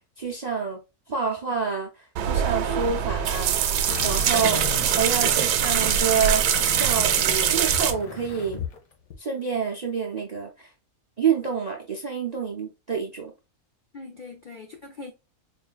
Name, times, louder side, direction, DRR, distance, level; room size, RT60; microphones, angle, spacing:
voice 1, 0.2-0.8 1.1-1.9 2.2-3.5 4.0-4.6 4.9-8.6 9.2-10.7 11.2-13.3, right 6 dB, 45° right, 0.5 m, -28 dB
sound 1, 2.2-7.9, right 9 dB, 85° right, 1.1 m, -23 dB
sound 2, 3.9-8.8 9.1-9.2, left 5 dB, 80° left, 1.4 m, -35 dB
voice 2, 4.4-4.8 13.9-15.1, left 3 dB, 60° left, 0.5 m, -42 dB
4.4 x 2.6 x 2.3 m
omnidirectional pair, 1.6 m